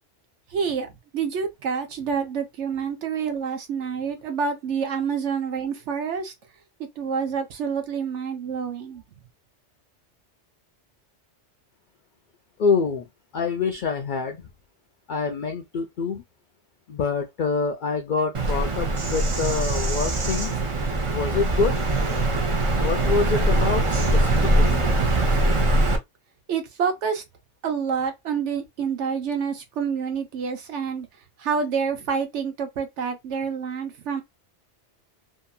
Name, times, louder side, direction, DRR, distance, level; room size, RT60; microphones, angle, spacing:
voice 1, 0.5-6.3 7.0-9.0 26.5-27.2 27.6-31.1 31.4-34.2, right 6 dB, 80° right, 1.0 m, -28 dB
voice 2, 12.6-13.0 13.3-14.4 15.1-16.2 16.9-20.5 21.1-21.8 22.8-24.8, left 5 dB, 60° left, 0.5 m, -26 dB
Bird vocalization bird call bird song, 18.3-26.0, right 1 dB, 40° right, 0.5 m, -22 dB
2.7 x 2.6 x 2.2 m
omnidirectional pair, 1.2 m